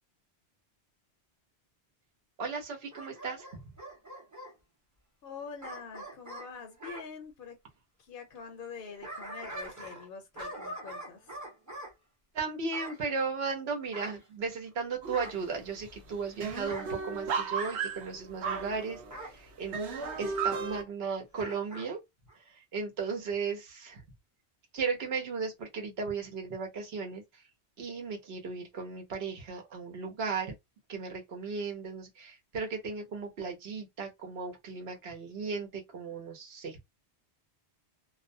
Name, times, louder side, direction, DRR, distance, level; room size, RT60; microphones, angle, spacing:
voice 1, 2.4-3.4 12.3-19.8 20.2-22.0 22.5-24.0 24.7-27.2 27.8-30.5 30.9-36.8, right 5 dB, 70° right, 1.0 m, -36 dB
Bark / Growling, 2.9-4.5 5.6-7.1 8.7-10.1 10.4-11.9 12.7-13.0 13.9-14.7 15.1-15.5 16.6-16.9 17.6-17.9 19.1-19.4 20.0-20.2 21.3-21.9 22.3-22.4, right 1 dB, 20° right, 0.7 m, -43 dB
voice 2, 5.2-7.6 8.0-11.4, left 6 dB, 60° left, 0.7 m, -45 dB
sound 1, 15.0-15.4 15.8-15.9 16.1-19.2 19.7-20.8, right 5 dB, 90° right, 0.9 m, -34 dB
2.4 x 2.1 x 2.6 m
omnidirectional pair, 1.1 m